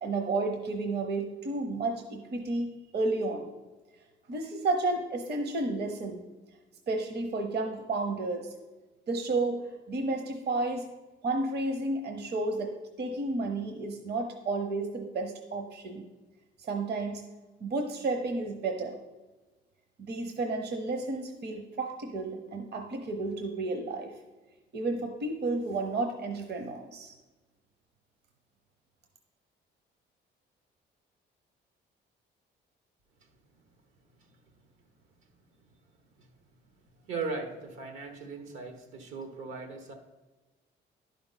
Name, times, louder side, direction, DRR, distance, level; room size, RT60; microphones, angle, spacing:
voice 1, 0.0-3.5 4.3-6.2 6.9-8.5 9.1-10.8 11.2-16.0 16.6-17.2 17.6-19.0 20.1-24.1 24.7-27.1, right 2 dB, 55° right, 5 dB, 0.9 m, -32 dB
voice 2, 37.1-39.9, right 4 dB, 90° right, 5 dB, 1.3 m, -38 dB
10.5 x 5.1 x 4.1 m, 1.2 s
cardioid pair, 90°, 20 cm